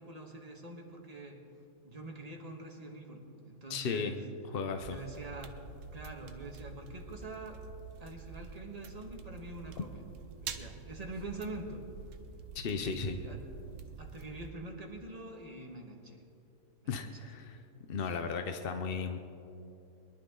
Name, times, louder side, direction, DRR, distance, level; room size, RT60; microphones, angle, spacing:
voice 1, 0.0-1.4 1.8-4.2 4.9-5.6 5.9-7.6 8.0-10.0 10.4-11.9 12.6-13.4 14.0-16.2 16.8-17.5 18.1-18.3, right 2 dB, 25° right, 1 dB, 1.6 m, -45 dB
voice 2, 3.7-4.2 4.5-5.0 9.8-9.9 12.5-13.2 16.9-17.6 17.9-19.2, left 5 dB, 55° left, 7 dB, 0.6 m, -35 dB
sound 1, 4.8-14.5, right 6 dB, 60° right, 1.0 m, -47 dB
22.5 x 11.5 x 3.8 m, 2.7 s
omnidirectional pair, 1.8 m